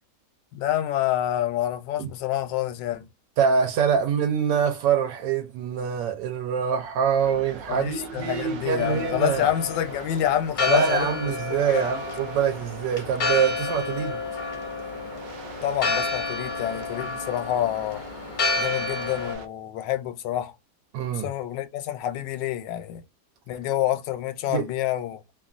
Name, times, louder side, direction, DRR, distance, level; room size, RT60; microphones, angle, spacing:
voice 1, 0.5-3.1 7.7-11.3 11.7-11.9 15.6-18.0 18.6-20.5 21.1-23.0 23.5-25.2, left 12 dB, 85° left, 1.2 m, -27 dB
voice 2, 3.4-9.5 10.7-14.2 20.9-21.3 24.5-24.7, right 7 dB, 90° right, 1.3 m, -25 dB
sound 1, 7.2-19.5, right 5 dB, 65° right, 1.0 m, -43 dB
Church bell, 8.8-19.3, left 3 dB, 50° left, 0.5 m, -30 dB
2.9 x 2.3 x 2.4 m
omnidirectional pair, 1.9 m